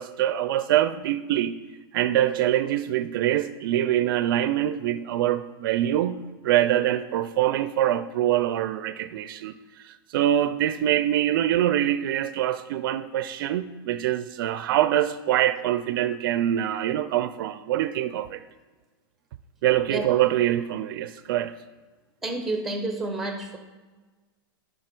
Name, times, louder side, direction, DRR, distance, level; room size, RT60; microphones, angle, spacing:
voice 1, 0.0-1.6 1.9-9.5 9.8-18.4 19.6-21.6, right 12 dB, 65° right, 12 dB, 0.4 m, -24 dB
voice 2, 22.2-23.6, right 2 dB, ahead, 6 dB, 1.0 m, -29 dB
8.7 x 5.5 x 4.5 m, 1.3 s
hypercardioid pair, 135°, 13 cm